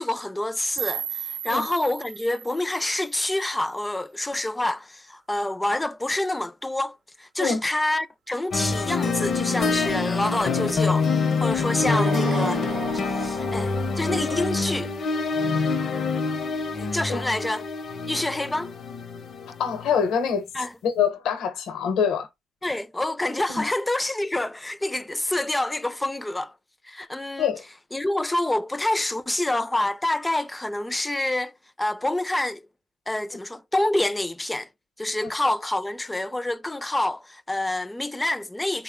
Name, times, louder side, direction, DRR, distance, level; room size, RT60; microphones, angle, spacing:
voice 1, 0.0-12.6 13.0-14.9 16.8-17.6 18.1-18.7 20.5-20.7 22.6-26.5 26.8-27.5 27.9-31.5 31.8-32.6 33.1-34.7 35.0-38.8, left 1 dB, 10° left, 0.4 m, -27 dB
sound 1, 0.8-3.8, right 10 dB, 85° right, 0.3 m, -35 dB
sound 2, 8.5-20.0, left 4 dB, 55° left, 0.6 m, -26 dB
sound 3, 11.6-14.6, right 4 dB, 50° right, 0.6 m, -35 dB
voice 2, 19.6-20.4 20.8-22.3 23.5-23.7 27.4-27.6 35.2-35.3, left 7 dB, 80° left, 0.9 m, -25 dB
3.7 x 2.1 x 3.6 m
cardioid pair, 90°, 0 cm